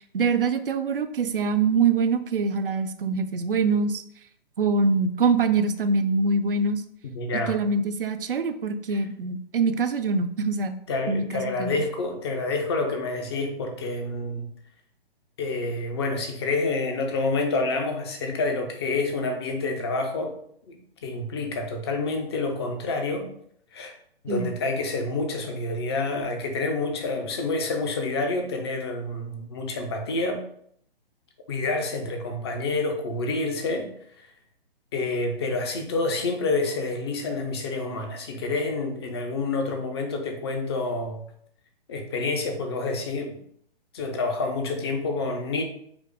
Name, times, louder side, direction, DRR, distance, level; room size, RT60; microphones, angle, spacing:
voice 1, 0.0-4.0 4.6-6.8 7.5-10.8 11.1-11.8 24.3-24.5, right 4 dB, 65° right, 9 dB, 0.6 m, -24 dB
voice 2, 7.1-7.6 8.9-9.0 10.9-14.5 15.4-20.4 20.7-23.3 23.7-23.9 24.2-30.4 31.5-33.9 34.2-34.3 34.9-41.2 41.9-43.4 43.9-45.6, left 3 dB, 25° left, 4 dB, 0.6 m, -28 dB
5.0 x 2.0 x 4.7 m, 0.68 s
figure-of-eight pair, 135°, 30 cm